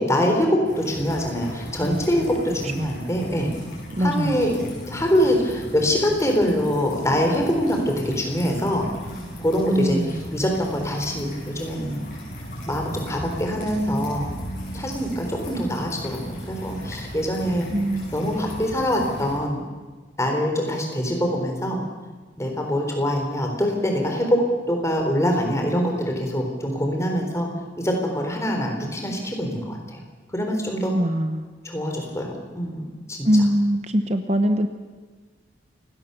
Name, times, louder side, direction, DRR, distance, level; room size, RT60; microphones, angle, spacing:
voice 1, 0.0-3.5 4.0-4.6 4.9-8.9 9.4-12.0 12.7-14.3 14.7-17.7 18.1-19.6 20.2-21.8 22.4-27.5 27.8-30.0 30.3-30.9 31.6-32.8 33.1-33.3, equal, 15° left, 2 dB, 3.9 m, -24 dB
sound 1, 0.7-19.4, equal, 45° left, 7.6 m, -37 dB
voice 2, 3.9-4.4 9.7-10.2 17.7-18.1 30.9-31.5 33.2-34.7, equal, 35° right, 8 dB, 1.0 m, -22 dB
28.5 x 17.5 x 7.0 m, 1.4 s
head